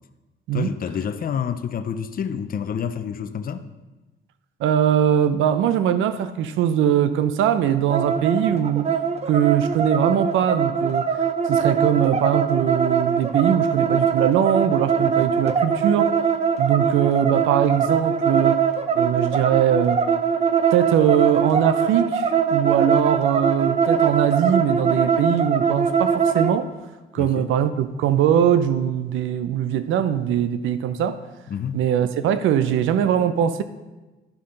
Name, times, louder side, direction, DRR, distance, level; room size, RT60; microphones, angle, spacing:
voice 1, 0.5-3.6 27.2-27.5 31.5-31.8, left 7 dB, 45° left, 0.6 m, -28 dB
voice 2, 4.6-8.9 9.3-11.1 11.5-16.1 16.6-18.6 18.9-20.0 20.7-26.7 27.1-31.2 31.7-33.6, right 9 dB, 85° right, 0.6 m, -21 dB
sound 1, 7.9-26.5, right 6 dB, 35° right, 0.6 m, -22 dB
11.5 x 5.6 x 3.8 m
cardioid pair, 90°, 20 cm